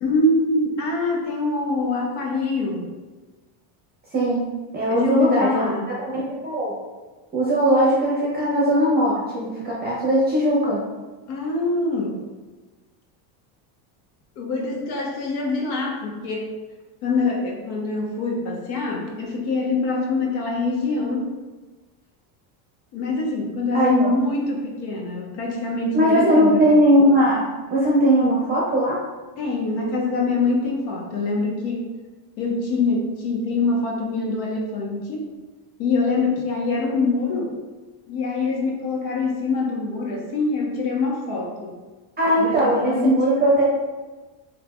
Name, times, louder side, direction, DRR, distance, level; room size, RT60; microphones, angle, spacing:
voice 1, 0.0-2.9 4.9-5.9 11.3-12.2 14.4-16.5 17.0-21.3 22.9-26.7 29.4-31.9 32.4-35.2 35.8-37.5 38.1-41.8 42.4-43.4, left 3 dB, 70° left, 0 dB, 1.0 m, -24 dB
voice 2, 4.1-4.4 4.7-5.9 6.4-6.7 7.3-10.8 23.7-24.1 25.9-29.0 42.2-43.6, equal, 20° right, -5 dB, 0.6 m, -19 dB
3.7 x 3.2 x 2.3 m, 1.3 s
supercardioid pair, 125°, 49 cm